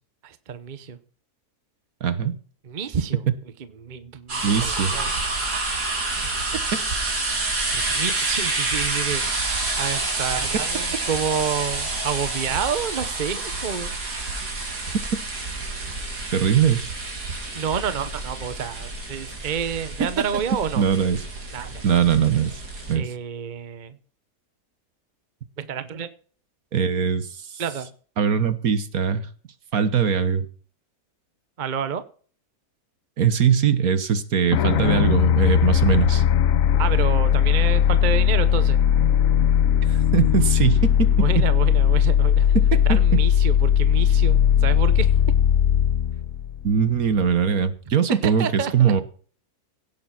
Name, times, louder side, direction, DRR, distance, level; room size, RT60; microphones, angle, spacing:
voice 1, 0.2-1.0 2.6-3.2 3.8-5.1 7.7-9.2 9.8-13.9 17.5-20.8 21.5-21.8 22.9-24.0 25.6-26.1 27.6-27.9 31.6-32.0 36.8-38.8 41.2-42.5 42.8-45.1 48.1-48.9, right 7 dB, 35° right, 12 dB, 1.0 m, -29 dB
voice 2, 2.0-2.4 4.4-4.9 7.1-7.2 16.3-16.9 20.8-21.2 21.8-22.6 22.9-23.1 26.7-27.6 28.2-29.3 29.7-30.5 33.2-36.2 39.9-41.4 42.7-43.0 46.6-49.0, right 7 dB, 65° right, 13 dB, 1.6 m, -21 dB
sound 1, 4.3-22.9, right 3 dB, 85° right, 3.8 m, -28 dB
sound 2, 34.5-47.2, left 9 dB, 60° left, 1.1 m, -19 dB
17.0 x 7.2 x 5.9 m, 0.42 s
omnidirectional pair, 1.7 m